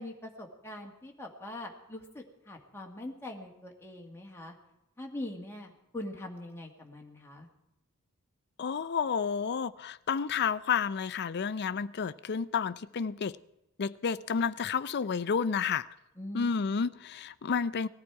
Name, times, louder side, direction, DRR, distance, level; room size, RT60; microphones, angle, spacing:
voice 1, 0.0-4.5 5.0-7.5 16.2-16.6, left 1 dB, 10° left, 1.8 m, -42 dB
voice 2, 8.6-13.4 13.8-15.9 16.3-17.9, left 6 dB, 50° left, 0.5 m, -30 dB
19.5 x 14.0 x 4.8 m
head